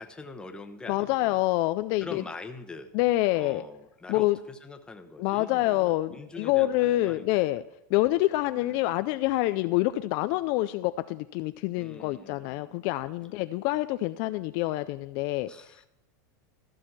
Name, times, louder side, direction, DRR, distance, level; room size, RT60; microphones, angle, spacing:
voice 1, 0.0-1.4 2.0-2.9 3.3-7.4 8.7-8.8 11.7-12.9 13.2-13.4 15.5-15.9, left 3 dB, 10° left, 7 dB, 0.9 m, -44 dB
voice 2, 0.9-2.2 2.9-3.6 4.1-4.4 5.2-7.6 7.9-15.5, left 17 dB, 50° left, 11 dB, 0.4 m, -26 dB
14.0 x 6.3 x 5.9 m, 0.88 s
supercardioid pair, 145°, 10 cm